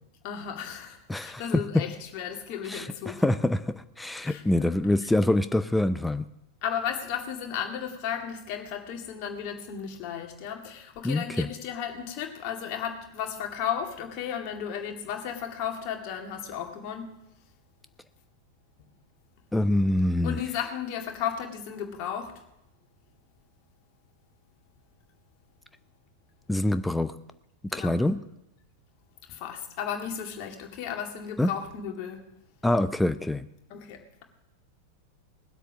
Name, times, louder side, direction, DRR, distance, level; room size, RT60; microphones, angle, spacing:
voice 1, 0.2-3.2 4.2-4.7 5.0-5.1 6.6-17.1 20.2-22.3 27.7-27.9 29.4-32.2 33.7-34.2, left 8 dB, 45° left, 3 dB, 2.1 m, -34 dB
voice 2, 1.1-1.4 2.7-6.2 11.0-11.5 19.5-20.4 26.5-27.2 27.7-28.2 31.4-31.5 32.6-33.5, left 1 dB, 5° left, 11 dB, 0.5 m, -25 dB
19.5 x 8.1 x 6.0 m, 0.87 s
figure-of-eight pair, 90°, 0 cm